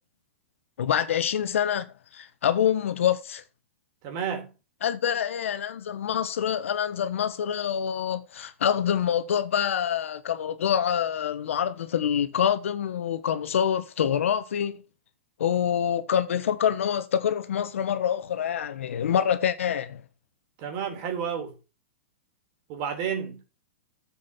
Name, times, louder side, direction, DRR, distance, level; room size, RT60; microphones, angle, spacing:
voice 1, 0.8-1.9 2.1-3.4 4.8-14.8 15.4-20.0, left 9 dB, 80° left, 1.3 m, -26 dB
voice 2, 4.0-4.5 20.6-21.6 22.7-23.4, right 7 dB, 45° right, 3.7 m, -31 dB
11.0 x 7.5 x 4.4 m
hypercardioid pair, 140°, 7 cm